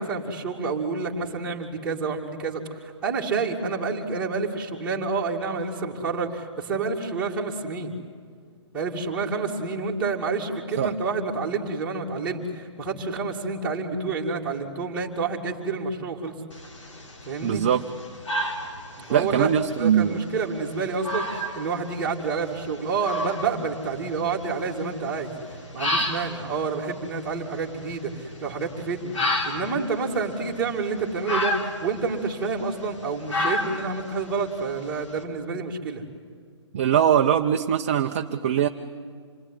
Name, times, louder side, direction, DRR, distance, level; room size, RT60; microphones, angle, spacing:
voice 1, 0.0-7.9 8.7-16.3 17.2-17.6 19.0-19.5 19.8-25.3 25.7-36.0, right 4 dB, 5° right, -4 dB, 2.4 m, -29 dB
sound 1, 16.5-35.2, left 1 dB, 85° left, 4.5 m, -33 dB
voice 2, 17.4-17.8 19.1-20.2 36.7-38.7, right 9 dB, 25° right, 4 dB, 0.7 m, -21 dB
27.5 x 21.0 x 9.9 m, 2.1 s
hypercardioid pair, 170°, 15 cm